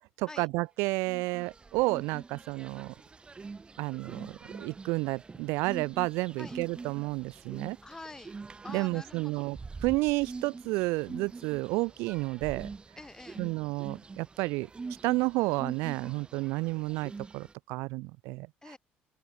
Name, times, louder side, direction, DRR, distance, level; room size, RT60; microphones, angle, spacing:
voice 1, 0.2-2.9 3.8-7.8 8.7-12.7 13.4-14.7 15.0-18.8, right 24 dB, 85° right, 0.6 m, -31 dB
sound 1, 1.0-17.5, right 4 dB, 25° right, 1.9 m, -45 dB
voice 2, 7.8-8.3 8.6-9.5 13.0-13.5 18.6-18.8, left 2 dB, 15° left, 4.8 m, -46 dB
open air
cardioid pair, 95°, 4 cm